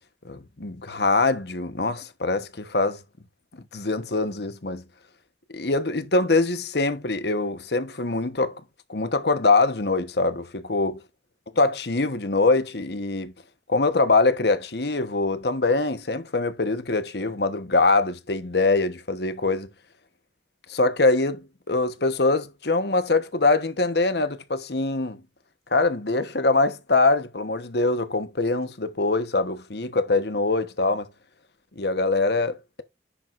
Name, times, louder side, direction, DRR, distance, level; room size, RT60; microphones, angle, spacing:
voice 1, 0.2-3.0 3.7-4.8 5.5-8.6 8.9-11.0 11.6-13.3 13.7-19.7 20.7-25.2 25.7-31.1 31.8-32.8, left 3 dB, 60° left, 1.2 m, -23 dB
10.0 x 7.7 x 2.6 m
head